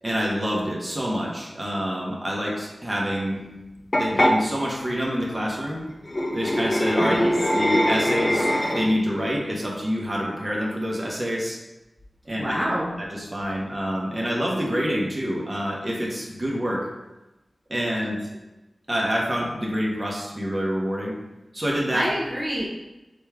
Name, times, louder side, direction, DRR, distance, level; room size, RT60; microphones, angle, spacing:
voice 1, 0.0-3.4 4.0-5.8 6.3-11.6 12.2-12.6 13.0-16.9 17.7-18.3 18.9-21.1 21.5-22.1, equal, 30° right, -2 dB, 1.1 m, -27 dB
sound 1, 3.9-4.4 6.0-9.1, equal, 35° left, 0.6 m, -22 dB
voice 2, 7.0-7.3 12.4-12.9 21.9-22.7, equal, 10° right, -5 dB, 0.7 m, -26 dB
4.0 x 3.4 x 3.6 m, 1.0 s
wide cardioid pair, 60°, 0 cm